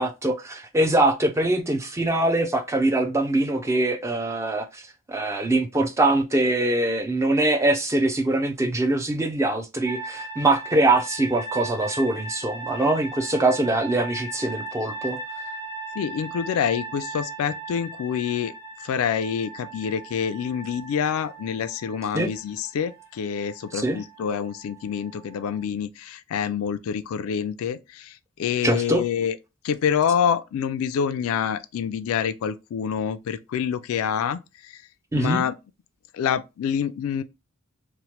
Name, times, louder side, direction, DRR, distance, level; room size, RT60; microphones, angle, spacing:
voice 1, 0.0-4.8 5.1-15.2 22.1-22.3 23.7-24.0 28.6-29.0 35.1-35.4, right 2 dB, 15° right, 0.4 m, -23 dB
sound 1, 9.8-25.6, right 2 dB, 45° right, 1.1 m, -38 dB
voice 2, 16.0-18.5 18.8-29.4 29.6-34.8 35.1-35.6 36.1-37.2, left 7 dB, 70° left, 0.3 m, -27 dB
3.0 x 2.1 x 2.9 m
head